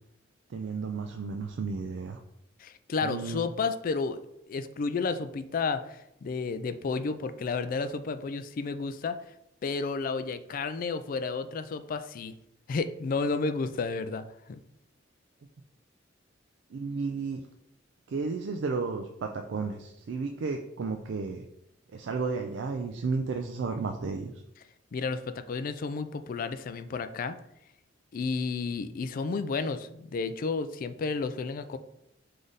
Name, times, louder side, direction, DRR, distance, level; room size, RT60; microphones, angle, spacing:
voice 1, 0.5-2.2 3.0-3.5 16.7-17.4 18.1-21.5 21.9-24.3, right 4 dB, 65° right, 5 dB, 0.4 m, -33 dB
voice 2, 2.6-4.2 4.5-9.2 9.6-12.3 12.7-14.6 24.9-27.4 28.1-31.8, left 4 dB, 45° left, 11 dB, 0.3 m, -32 dB
3.8 x 3.3 x 3.9 m, 0.78 s
head